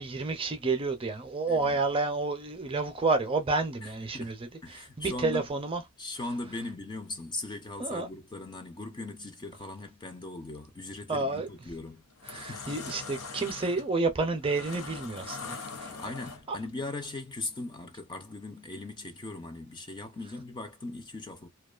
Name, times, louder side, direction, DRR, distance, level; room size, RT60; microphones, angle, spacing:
voice 1, 0.0-5.8 7.8-8.1 11.1-11.5 12.3-15.9 16.5-16.6, right 3 dB, 25° right, 0.5 m, -30 dB
voice 2, 1.5-1.8 3.8-5.5 6.0-12.0 12.3-12.8 15.4-21.5, left 2 dB, 20° left, 0.5 m, -39 dB
sound 1, 11.3-11.6 12.0-16.7, left 4 dB, 90° left, 0.7 m, -42 dB
2.5 x 2.3 x 2.3 m
head